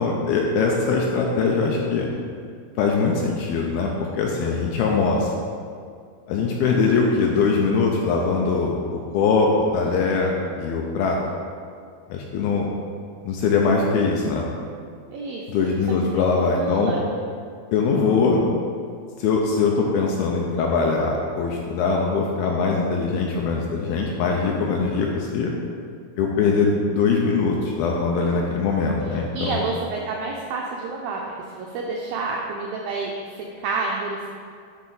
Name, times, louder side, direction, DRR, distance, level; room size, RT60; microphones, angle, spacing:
voice 1, 0.0-2.1 2.8-5.4 6.3-11.2 12.1-12.7 13.3-14.5 15.5-17.0 17.7-18.4 19.2-25.5 26.2-29.6, left 4 dB, 80° left, 0 dB, 2.2 m, -22 dB
voice 2, 15.1-15.7 16.3-17.0 28.7-28.9 29.3-34.3, right 3 dB, 85° right, -1 dB, 2.0 m, -29 dB
9.1 x 3.7 x 3.9 m, 2.2 s
omnidirectional pair, 4.7 m